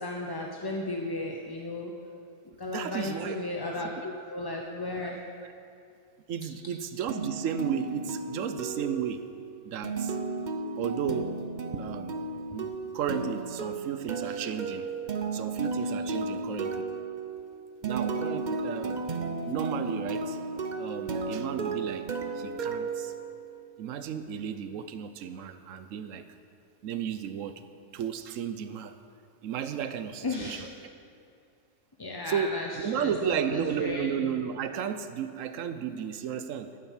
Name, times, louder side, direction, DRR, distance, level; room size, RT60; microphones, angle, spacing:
voice 1, 0.0-1.9 2.6-5.2 30.2-30.6 32.0-32.7 32.9-34.1, left 2 dB, 25° left, 0 dB, 0.6 m, -34 dB
voice 2, 2.7-3.4 4.0-4.1 5.4-5.5 6.3-9.2 9.6-10.2 10.8-11.3 11.7-12.2 12.5-14.9 15.3-16.8 17.8-19.1 19.5-20.4 20.8-22.1 22.3-23.1 23.8-26.3 26.8-27.6 27.9-29.0 29.4-30.7 32.3-36.7, right 8 dB, 75° right, 10 dB, 1.1 m, -33 dB
sound 1, 7.1-23.8, right 3 dB, 40° right, 0.7 m, -34 dB
11.5 x 9.3 x 7.4 m, 2.5 s
omnidirectional pair, 1.4 m